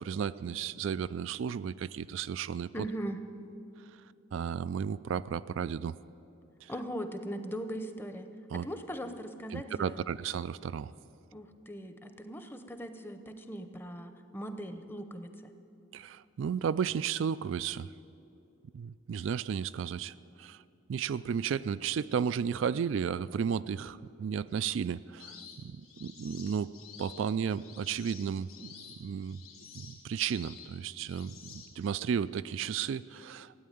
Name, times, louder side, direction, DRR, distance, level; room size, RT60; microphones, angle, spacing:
voice 1, 0.0-2.9 4.3-6.0 6.6-6.7 8.5-8.7 9.5-10.9 15.9-17.9 18.7-20.6 20.9-26.7 27.0-29.4 29.7-33.5, right 7 dB, 65° right, 14 dB, 0.3 m, -33 dB
voice 2, 2.7-3.2 6.7-10.0 11.3-15.5, equal, 10° left, 8 dB, 0.8 m, -40 dB
sound 1, 25.2-32.1, left 6 dB, 90° left, 3.2 m, -51 dB
16.5 x 9.5 x 9.2 m, 2.7 s
head